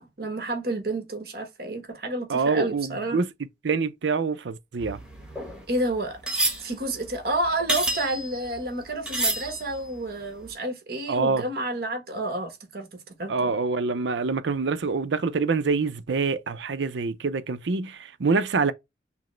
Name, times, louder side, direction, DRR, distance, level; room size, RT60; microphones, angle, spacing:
voice 1, 0.0-3.2 5.7-6.2 6.6-13.6, right 1 dB, 55° right, 1.2 m, -30 dB
voice 2, 2.3-3.3 3.6-5.0 11.1-11.5 13.3-18.7, right 4 dB, 75° right, 0.5 m, -25 dB
sound 1, 4.8-8.7 9.1-10.0 10.4-10.5, right 1 dB, 5° right, 1.1 m, -29 dB
6.0 x 2.1 x 3.1 m
head